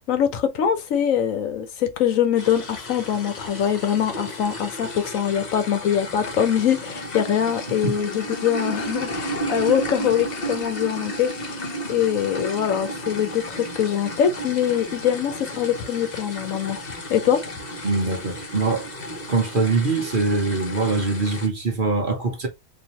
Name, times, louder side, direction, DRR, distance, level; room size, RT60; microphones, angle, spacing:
voice 1, 0.1-11.6 11.9-16.8 17.1-17.4, left 9 dB, 65° left, 1.2 m, -23 dB
sound 1, 2.4-21.5, equal, 35° left, 0.9 m, -33 dB
voice 2, 17.8-18.9 19.3-22.5, right 3 dB, 40° right, 0.9 m, -23 dB
4.1 x 2.7 x 2.9 m
omnidirectional pair, 1.6 m